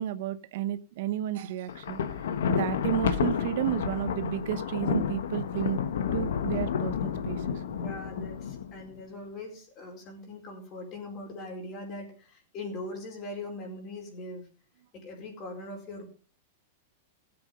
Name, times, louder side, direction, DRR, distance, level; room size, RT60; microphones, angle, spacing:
voice 1, 0.0-2.0 2.5-5.8 6.1-7.6, right 12 dB, 60° right, 14 dB, 0.8 m, -32 dB
Thunder, 1.7-8.9, left 7 dB, 85° left, 1.4 m, -30 dB
voice 2, 7.7-14.4 14.9-16.0, left 2 dB, 30° left, 2 dB, 4.6 m, -41 dB
16.0 x 7.9 x 5.3 m, 0.38 s
supercardioid pair, 155°, 0 cm